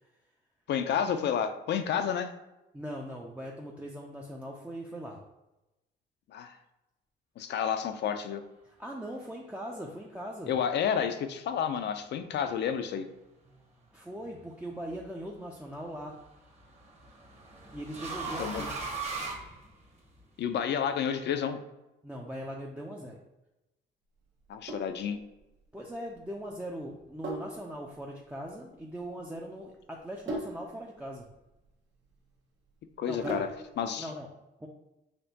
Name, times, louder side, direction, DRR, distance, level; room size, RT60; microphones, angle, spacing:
voice 1, 0.7-2.3 6.3-6.6 7.4-8.4 10.5-13.1 18.4-18.6 20.4-21.6 24.5-25.2 33.0-33.5 33.8-34.1, left 8 dB, 60° left, 8 dB, 0.4 m, -30 dB
voice 2, 2.7-5.2 8.8-10.5 13.9-16.2 17.7-18.7 22.0-23.2 25.7-31.3 33.0-33.5 34.0-34.3 34.6-34.7, equal, 5° right, -2 dB, 0.4 m, -40 dB
sound 1, 14.3-14.8 16.2-20.2, right 3 dB, 35° right, 1.1 m, -39 dB
Sink (filling or washing), 24.4-33.8, right 1 dB, 65° right, 1.0 m, -42 dB
4.3 x 2.9 x 2.8 m, 0.96 s
cardioid pair, 90°, 20 cm